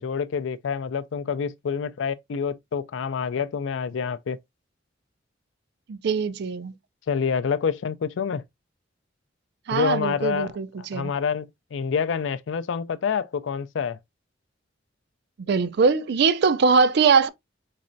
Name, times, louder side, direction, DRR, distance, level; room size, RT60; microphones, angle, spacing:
voice 1, 0.0-4.4 7.1-8.4 9.7-14.0, left 6 dB, 75° left, 0.4 m, -27 dB
voice 2, 5.9-6.7 9.7-11.1 15.4-17.3, right 5 dB, 60° right, 0.4 m, -21 dB
4.1 x 3.2 x 2.5 m
head